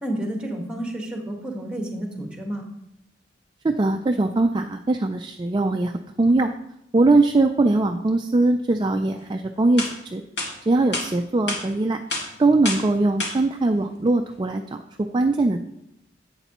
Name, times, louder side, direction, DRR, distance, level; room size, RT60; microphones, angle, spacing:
voice 1, 0.0-2.6, right 1 dB, 5° right, 1 dB, 1.3 m, -30 dB
voice 2, 3.6-6.5 6.9-10.2 10.7-12.0 12.4-14.8 15.1-15.6, right 2 dB, 25° right, 5 dB, 0.3 m, -21 dB
sound 1, 9.3-9.4 9.8-9.9 10.4-10.5 10.9-11.1 11.5-11.6 12.1-12.2 12.6-12.8 13.2-13.3, left 2 dB, 60° left, 2.3 m, -27 dB
11.0 x 8.0 x 3.0 m, 0.81 s
head